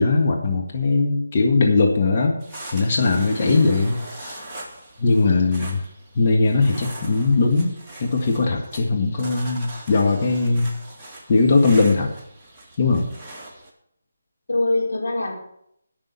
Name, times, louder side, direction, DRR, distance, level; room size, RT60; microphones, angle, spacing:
voice 1, 0.0-2.4 2.7-4.5 5.0-5.8 6.2-7.7 8.0-10.7 11.3-12.1 12.8-13.1, left 3 dB, 40° left, 1 dB, 1.8 m, -19 dB
sound 1, 2.4-13.7, right 1 dB, 5° right, 2.4 m, -41 dB
voice 2, 3.4-3.7 5.1-5.4 14.5-15.5, left 2 dB, 70° left, -1 dB, 4.6 m, -25 dB
11.0 x 6.2 x 8.6 m, 0.73 s
figure-of-eight pair, 160°, 0 cm